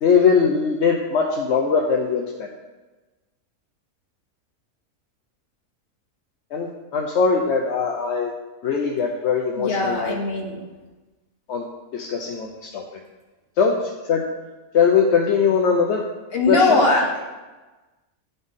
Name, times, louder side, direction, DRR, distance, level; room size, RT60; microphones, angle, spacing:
voice 1, 0.0-2.5 6.5-8.3 8.6-10.2 11.5-11.6 11.9-12.8 13.6-14.2 14.7-16.0 16.5-16.8, left 6 dB, 60° left, 1 dB, 0.8 m, -21 dB
voice 2, 9.6-10.6 16.3-17.2, left 2 dB, 45° left, -1 dB, 1.3 m, -20 dB
11.0 x 4.0 x 3.6 m, 1.2 s
omnidirectional pair, 1.5 m